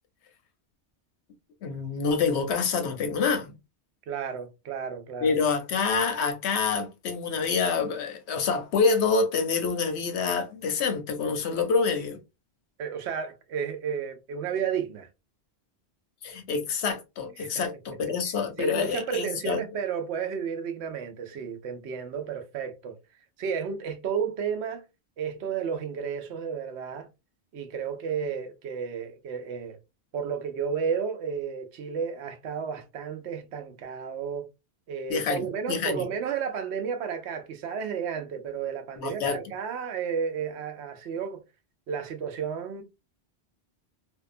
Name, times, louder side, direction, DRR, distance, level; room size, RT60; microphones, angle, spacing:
voice 1, 1.6-3.5 5.2-12.2 16.2-19.6 35.1-36.1 39.0-39.4, left 5 dB, 80° left, 1.0 m, -27 dB
voice 2, 4.1-5.3 12.8-15.1 17.4-17.6 18.6-23.0 23.4-24.8 25.2-27.1 27.5-29.8 30.1-34.5 34.9-41.4 41.9-42.8, right 7 dB, 80° right, 0.9 m, -32 dB
2.7 x 2.1 x 2.4 m
omnidirectional pair, 1.1 m